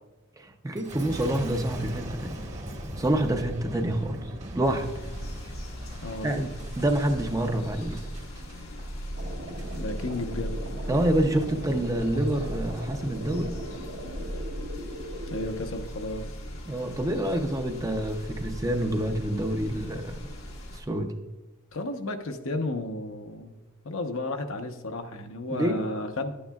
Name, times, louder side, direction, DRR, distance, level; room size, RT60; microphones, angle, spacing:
voice 1, 0.4-2.4 3.0-4.9 6.2-8.1 10.9-13.6 16.7-20.3 20.7-21.1 25.5-25.9, right 1 dB, 15° right, 5 dB, 0.6 m, -27 dB
Boom, 0.8-10.1 10.6-11.1, right 1 dB, 35° right, 1.2 m, -40 dB
sound 1, 4.6-20.8, equal, 90° left, 1.5 m, -38 dB
voice 2, 6.0-6.4 9.8-10.6 15.3-16.3 21.7-23.5 23.8-26.3, left 2 dB, 70° left, 5 dB, 0.8 m, -33 dB
sound 2, 9.2-15.5, equal, 50° right, 1.0 m, -40 dB
11.0 x 8.6 x 2.3 m, 1.1 s
head